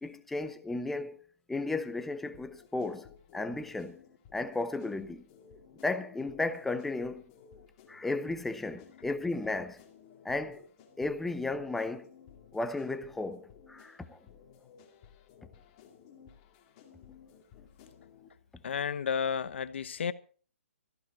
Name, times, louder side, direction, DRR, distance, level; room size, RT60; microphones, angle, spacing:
voice 1, 0.0-1.2 1.5-4.0 4.3-5.2 5.8-7.2 7.9-9.8 10.2-10.6 11.0-12.1 12.5-14.2, left 2 dB, 5° left, 0.6 m, -34 dB
sound 1, 2.3-18.3, left 7 dB, 25° left, 2.2 m, -56 dB
voice 2, 18.6-20.1, left 7 dB, 55° left, 1.0 m, -32 dB
15.5 x 14.5 x 4.2 m
hypercardioid pair, 165°, 7 cm